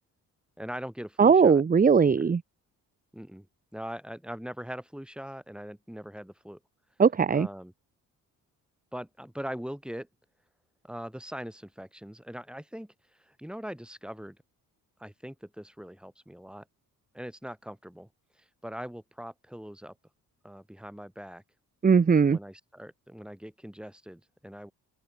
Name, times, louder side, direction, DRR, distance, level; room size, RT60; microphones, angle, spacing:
voice 1, 0.6-1.6 2.1-2.3 3.1-3.5 3.7-6.6 7.3-7.7 8.9-10.1 10.8-12.9 13.2-14.4 15.0-16.6 17.1-18.1 18.4-19.9 20.4-21.4 22.2-24.7, equal, ahead, 4.3 m, -41 dB
voice 2, 1.2-2.4 7.0-7.5 21.8-22.4, right 6 dB, 25° right, 0.7 m, -19 dB
open air
cardioid pair, 70°, 35 cm